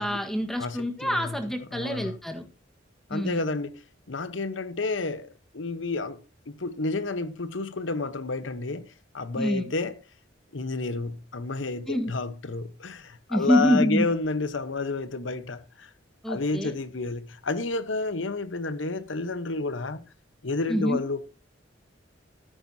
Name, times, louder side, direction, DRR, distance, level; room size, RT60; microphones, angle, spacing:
voice 1, 0.0-2.5 3.1-3.5 9.3-9.7 11.9-12.1 13.3-14.1 16.2-16.7 20.7-21.0, equal, ahead, 1.5 m, -26 dB
voice 2, 0.6-1.4 1.7-2.2 3.1-3.7 4.1-6.2 6.5-9.9 10.5-15.9 16.3-20.0 20.4-21.2, left 3 dB, 80° left, 1.0 m, -30 dB
14.0 x 9.7 x 2.8 m
head